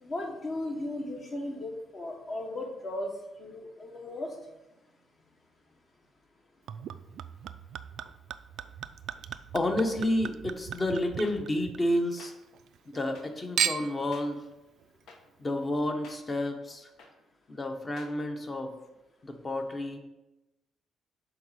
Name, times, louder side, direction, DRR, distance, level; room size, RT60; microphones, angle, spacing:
voice 1, 0.0-3.1 3.4-4.3, left 1 dB, 45° left, 1 dB, 1.5 m, -36 dB
Chink clink / Liquid, 6.7-12.2 12.5-13.2 13.6-14.1 14.8-14.9, right 9 dB, 75° right, 0.3 m, -36 dB
voice 2, 9.5-12.3 12.9-14.4 15.4-16.9 17.5-18.7 19.2-20.0, left 1 dB, 30° left, 5 dB, 1.0 m, -30 dB
sound 1, 11.2-11.3 12.2-12.3 13.1-13.2 14.1-14.2 15.1-15.2 16.0-16.2 17.0-17.1 18.0-18.1, left 3 dB, 80° left, 1.1 m, -49 dB
6.8 x 4.0 x 4.9 m, 0.98 s
cardioid pair, 90°, 0 cm